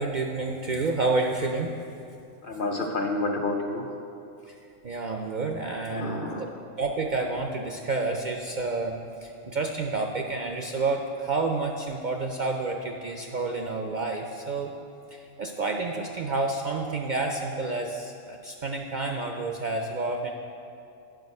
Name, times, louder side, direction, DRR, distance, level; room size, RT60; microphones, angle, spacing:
voice 1, 0.0-1.7 4.5-4.6 4.8-6.5 6.8-14.7 15.1-20.3, right 3 dB, 55° right, 2 dB, 0.5 m, -29 dB
voice 2, 2.4-3.8 5.9-6.5, left 2 dB, 50° left, 2 dB, 0.9 m, -29 dB
9.2 x 6.4 x 5.3 m, 2.7 s
omnidirectional pair, 1.2 m